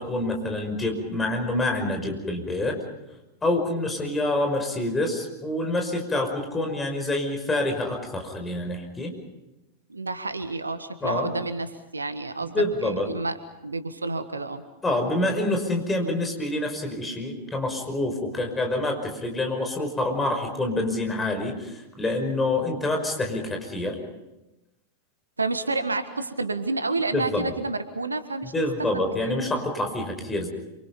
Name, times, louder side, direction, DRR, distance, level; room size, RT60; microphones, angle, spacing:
voice 1, 0.0-2.8 3.4-9.1 11.0-11.3 12.4-13.0 14.8-24.0 27.1-27.5 28.4-30.5, left 2 dB, 15° left, 3 dB, 5.7 m, -27 dB
voice 2, 9.9-12.5 12.8-13.4 13.6-14.6 25.4-28.5 28.9-29.3, right 3 dB, 80° right, 11 dB, 1.5 m, -29 dB
27.5 x 25.5 x 5.3 m, 0.99 s
figure-of-eight pair, 90°, 0 cm